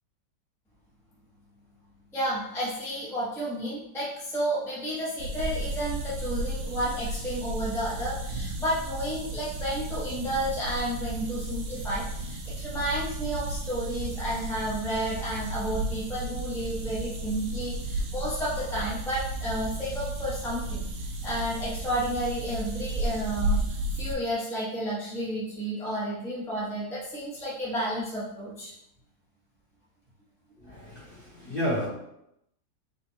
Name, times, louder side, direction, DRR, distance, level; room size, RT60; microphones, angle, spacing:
voice 1, 2.1-23.6 23.9-28.7, equal, ahead, -8 dB, 1.1 m, -31 dB
sound 1, 5.2-24.1, right 2 dB, 85° right, 1.4 m, -33 dB
voice 2, 30.6-31.9, equal, 35° left, -8 dB, 1.6 m, -31 dB
4.2 x 2.5 x 4.3 m, 0.79 s
omnidirectional pair, 1.7 m